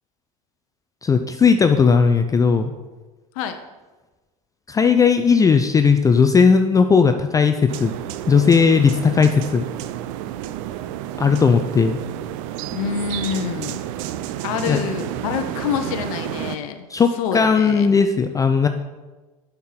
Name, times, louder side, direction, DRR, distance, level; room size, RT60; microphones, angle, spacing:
voice 1, 1.0-2.7 4.7-7.9 8.3-9.7 11.2-12.0 14.7-14.8 16.9-17.1 17.3-18.7, left 5 dB, 20° left, 7 dB, 0.4 m, -16 dB
sound 1, 7.7-16.6, right 12 dB, 60° right, 0.5 m, -30 dB
voice 2, 12.7-13.9 14.4-16.9 17.1-17.9, left 7 dB, 65° left, 8 dB, 0.7 m, -27 dB
7.2 x 4.5 x 5.8 m, 1.2 s
hypercardioid pair, 90°, 19 cm